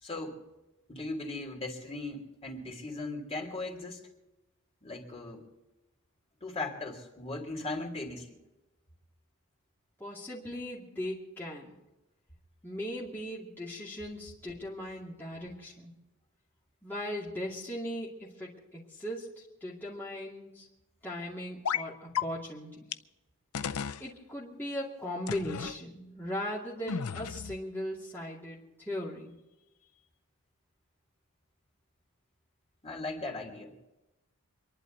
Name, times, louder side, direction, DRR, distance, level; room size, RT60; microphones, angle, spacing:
voice 1, 0.0-0.4 0.9-4.1 4.8-5.4 6.4-8.4 32.8-33.7, left 2 dB, 30° left, 0 dB, 3.1 m, -38 dB
voice 2, 10.0-11.7 12.6-15.9 16.8-20.7 21.0-22.9 24.0-29.3, left 1 dB, 10° left, -7 dB, 2.4 m, -38 dB
sound 1, 21.6-21.9 22.1-22.2 22.9-23.0 23.5-24.0 25.3-25.7 26.9-27.6, left 7 dB, 85° left, 0.6 m, -33 dB
26.5 x 11.5 x 4.0 m, 1.0 s
head